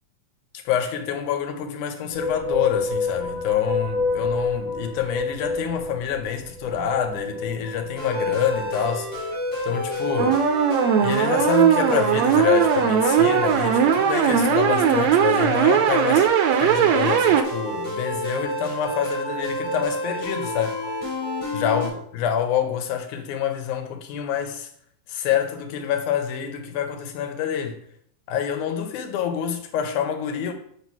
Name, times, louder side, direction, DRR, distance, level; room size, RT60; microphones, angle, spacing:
voice 1, 0.7-9.1 9.6-10.4 11.0-16.3 16.6-20.8 21.5-24.7 25.1-27.8 28.3-30.5, left 9 dB, 80° left, 2.2 m, -27 dB
sound 1, 2.1-10.1, left 3 dB, 40° right, 2.5 m, -29 dB
sound 2, 8.0-21.9, left 1 dB, 15° left, 3.0 m, -29 dB
sound 3, 10.2-17.4, right 8 dB, 75° right, 1.7 m, -19 dB
5.7 x 4.8 x 4.6 m
omnidirectional pair, 3.5 m